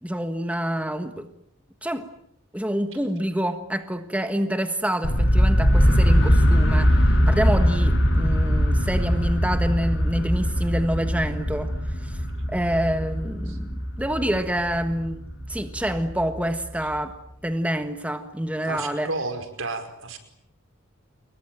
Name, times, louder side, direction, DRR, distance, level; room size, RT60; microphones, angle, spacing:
voice 1, 0.0-1.3 1.8-2.1 2.5-11.7 12.0-12.2 12.5-15.2 15.5-17.1 17.4-19.1, equal, 5° right, 1.5 m, -27 dB
sound 1, 5.0-16.9, equal, 55° left, 7.1 m, -21 dB
voice 2, 18.7-20.2, right 3 dB, 70° right, 5.2 m, -32 dB
28.5 x 22.5 x 9.1 m
head